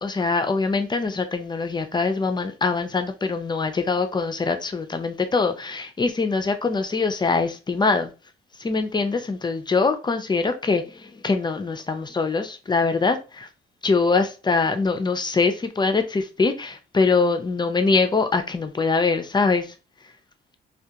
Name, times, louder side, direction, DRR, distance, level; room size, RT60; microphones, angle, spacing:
voice 1, 0.0-8.1 8.6-10.8 11.2-13.5 13.8-19.7, left 4 dB, 20° left, 0.4 m, -23 dB
2.3 x 2.2 x 2.7 m
cardioid pair, 90°, 20 cm